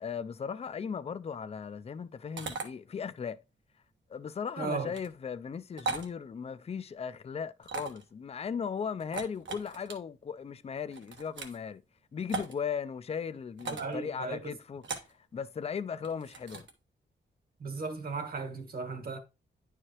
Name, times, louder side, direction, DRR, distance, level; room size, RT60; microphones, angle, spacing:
voice 1, 0.0-3.4 4.1-11.8 12.1-16.7, left 6 dB, 35° left, 0.4 m, -37 dB
sound 1, 2.4-2.7 4.9-5.1 5.8-6.1 7.6-8.1 9.0-9.9 10.9-11.6 12.3-12.5 13.6-13.9 14.8-15.1 16.0-16.7, right 4 dB, 80° right, 1.3 m, -38 dB
voice 2, 4.6-4.9 13.6-14.4 17.6-19.2, right 4 dB, 55° right, 1.3 m, -36 dB
10.0 x 4.9 x 2.9 m
wide cardioid pair, 145°, 19 cm